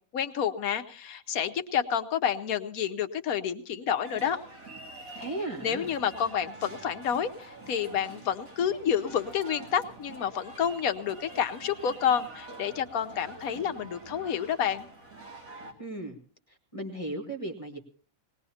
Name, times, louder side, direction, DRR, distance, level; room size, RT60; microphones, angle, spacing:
voice 1, 0.1-4.4 5.6-14.9, left 8 dB, 85° left, 9 dB, 1.4 m, -29 dB
sound 1, 4.0-15.7, right 2 dB, 70° right, 2.8 m, -46 dB
voice 2, 5.2-5.9 15.8-16.2 16.5-17.8, right 2 dB, 25° left, 3 dB, 1.9 m, -36 dB
20.5 x 19.0 x 2.8 m, 0.43 s
omnidirectional pair, 1.5 m